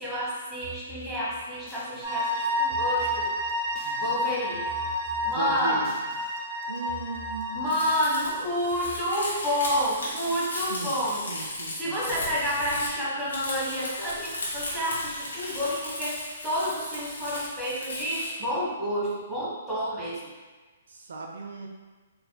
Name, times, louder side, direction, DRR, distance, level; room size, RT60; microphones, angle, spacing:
voice 1, 0.0-3.3 4.0-4.7 5.2-5.8 7.5-11.2 11.8-20.3, equal, ahead, -9 dB, 1.1 m, -29 dB
sound 1, 0.6-4.3 4.5-6.4 6.6-9.0, right 1 dB, 25° left, 0.8 m, -47 dB
sound 2, 2.0-8.3, left 1 dB, 15° right, 1.4 m, -30 dB
voice 2, 3.8-4.2 5.3-6.0 6.7-7.8 10.6-11.0 11.3-12.6 20.9-21.7, right 3 dB, 75° right, 1 dB, 0.4 m, -38 dB
Crumpling crinkling, 7.7-18.3, left 1 dB, 80° left, 1.3 m, -36 dB
4.1 x 3.1 x 2.2 m, 1.3 s
hypercardioid pair, 135°, 0 cm